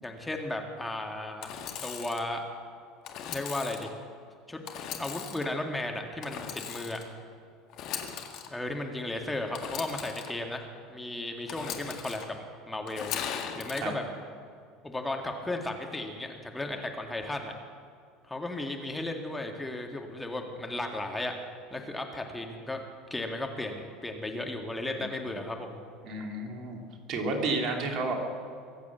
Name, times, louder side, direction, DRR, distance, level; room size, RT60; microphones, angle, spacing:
voice 1, 0.0-1.5 1.8-2.4 3.3-3.9 4.5-4.6 5.0-7.0 8.5-10.6 10.9-12.4 12.7-13.1 13.5-14.0 14.8-17.5 18.3-21.3 21.7-22.8 23.1-25.8, left 2 dB, 10° left, 3 dB, 2.1 m, -35 dB
Engine / Sawing, 1.4-2.2 3.0-3.9 4.7-5.5 6.2-7.1 7.7-8.5 9.5-10.3 11.5-12.3 12.9-13.8, left 8 dB, 55° left, 1.9 m, -38 dB
voice 2, 26.0-26.8 27.1-28.1, right 3 dB, 50° right, 2 dB, 2.9 m, -31 dB
23.5 x 8.3 x 7.3 m, 2.4 s
hypercardioid pair, 70°, 0 cm